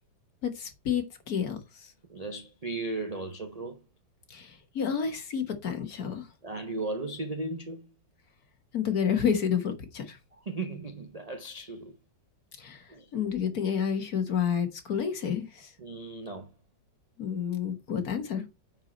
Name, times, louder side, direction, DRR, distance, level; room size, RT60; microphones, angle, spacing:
voice 1, 0.4-1.9 4.3-6.3 8.7-10.2 12.6-15.7 17.2-18.4, left 7 dB, 50° left, 1.8 m, -30 dB
voice 2, 2.1-3.8 6.4-7.9 10.3-12.0 12.9-13.1 15.8-16.5, right 2 dB, 50° right, 0.4 m, -36 dB
9.1 x 4.7 x 4.3 m
omnidirectional pair, 2.1 m